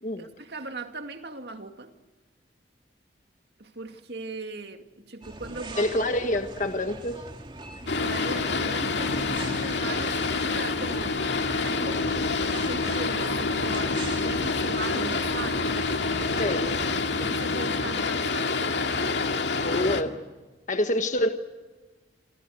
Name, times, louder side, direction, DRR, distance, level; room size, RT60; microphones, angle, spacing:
voice 1, 0.2-1.9 3.6-5.9 7.8-11.3 11.6-15.7 17.2-18.6, right 3 dB, 65° right, 6 dB, 2.4 m, -38 dB
sound 1, 5.2-16.8, right 2 dB, 30° right, 2.5 m, -42 dB
voice 2, 5.8-7.2 16.4-16.7 19.6-20.2 20.7-21.3, left 1 dB, 45° left, 6 dB, 1.5 m, -26 dB
Boat Water vehicle, 7.9-20.0, left 3 dB, 80° left, 2.2 m, -27 dB
28.5 x 25.0 x 6.6 m, 1.3 s
head